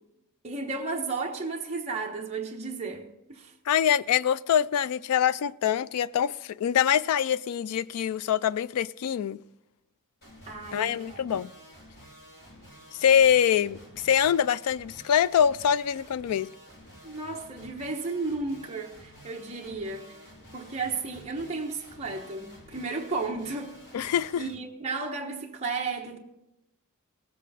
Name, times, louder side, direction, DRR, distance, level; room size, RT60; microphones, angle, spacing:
voice 1, 0.4-3.5 10.5-11.2 17.0-20.3 20.5-26.2, right 3 dB, 30° right, 1.0 m, -34 dB
voice 2, 3.7-9.4 10.7-11.5 13.0-16.5 23.9-24.4, left 9 dB, 80° left, 0.3 m, -24 dB
sound 1, 10.2-24.5, equal, 50° left, 4.5 m, -51 dB
18.5 x 8.3 x 4.1 m
head